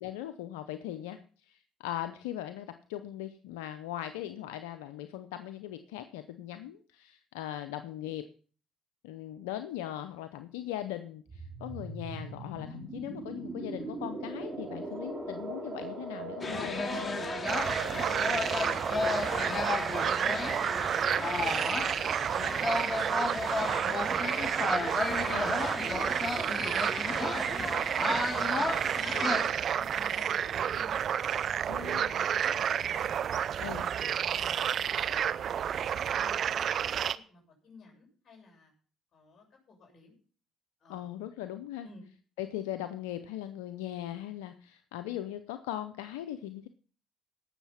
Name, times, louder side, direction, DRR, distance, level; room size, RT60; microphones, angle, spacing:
voice 1, 0.0-8.2 9.0-17.3 25.3-25.6 31.7-32.3 33.6-33.8 40.9-41.9 42.4-46.7, left 12 dB, 90° left, 10 dB, 0.6 m, -39 dB
sound 1, 11.3-21.8, right 3 dB, 40° right, 5.4 m, -41 dB
sound 2, 16.4-29.5, left 3 dB, 30° left, 2.3 m, -33 dB
sound 3, 17.5-37.2, right 9 dB, 60° right, 0.5 m, -30 dB
voice 2, 18.0-18.5 19.3-26.4 27.0-28.6 28.9-31.3 31.7-33.0 33.5-34.0 34.3-35.8 36.1-38.7 39.1-40.1 40.8-41.1 41.8-42.0, left 4 dB, 50° left, 0 dB, 7.1 m, -51 dB
17.5 x 6.6 x 5.7 m, 0.42 s
hypercardioid pair, 60°, 0 cm